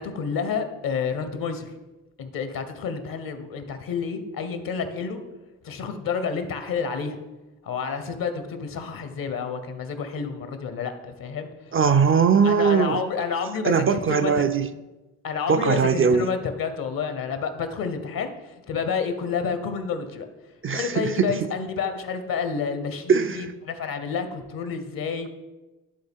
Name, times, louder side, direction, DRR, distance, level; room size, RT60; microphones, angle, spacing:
voice 1, 0.0-1.7 2.2-5.2 5.6-7.2 7.6-11.5 12.4-14.3 15.2-20.3 20.7-25.3, left 5 dB, 60° left, 8 dB, 1.0 m, -29 dB
voice 2, 11.7-13.0 13.6-14.7 15.5-16.3 20.6-21.3 23.1-23.5, right 6 dB, 35° right, 9 dB, 0.4 m, -20 dB
11.0 x 3.8 x 3.6 m, 1.1 s
hypercardioid pair, 45°, 39 cm